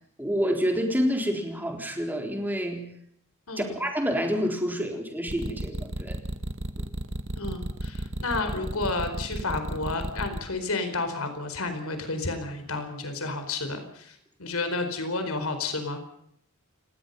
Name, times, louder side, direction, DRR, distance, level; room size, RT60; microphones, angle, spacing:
voice 1, 0.2-2.9 3.6-6.2, equal, 10° right, 3 dB, 4.0 m, -28 dB
voice 2, 3.5-3.8 7.4-16.0, left 3 dB, 70° left, 8 dB, 4.5 m, -31 dB
sound 1, 5.3-10.4, right 1 dB, 60° right, 1.8 m, -32 dB
29.5 x 18.0 x 5.6 m, 0.70 s
head